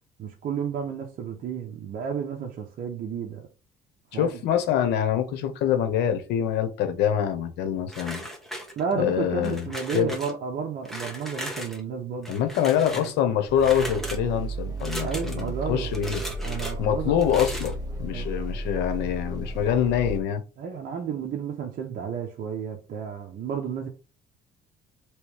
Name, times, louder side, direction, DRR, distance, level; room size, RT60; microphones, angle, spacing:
voice 1, 0.2-3.5 4.1-4.3 8.8-12.3 12.9-13.1 15.0-15.9 16.4-17.2 18.1-18.3 20.6-23.9, right 6 dB, 55° right, 0.8 m, -32 dB
voice 2, 4.1-8.3 9.0-9.7 9.9-10.2 12.3-16.2 16.8-20.4, left 9 dB, 85° left, 0.9 m, -25 dB
sound 1, 7.9-9.0 9.4-10.3 10.8-11.8 12.2-13.1 13.6-14.2 14.8-15.5 15.9-16.7 17.2-17.8, equal, ahead, 1.1 m, -37 dB
sound 2, 13.5-20.2, right 2 dB, 20° right, 1.4 m, -34 dB
3.2 x 3.1 x 4.7 m
cardioid pair, 110°, 17 cm